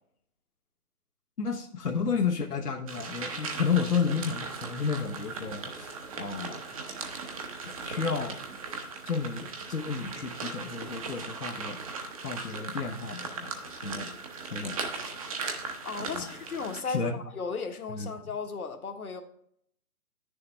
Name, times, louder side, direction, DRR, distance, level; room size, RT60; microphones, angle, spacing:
voice 1, 1.4-6.6 7.8-8.4 9.1-11.8 12.2-13.5 13.8-14.1 14.4-14.8 16.1-16.2 16.8-17.1 18.0-18.1, left 5 dB, 90° left, 1.1 m, -31 dB
sound 1, 2.9-16.8, right 4 dB, 25° right, 0.8 m, -38 dB
voice 2, 15.8-19.2, left 5 dB, 70° left, 1.4 m, -35 dB
9.8 x 6.8 x 3.3 m
figure-of-eight pair, 145°, 45 cm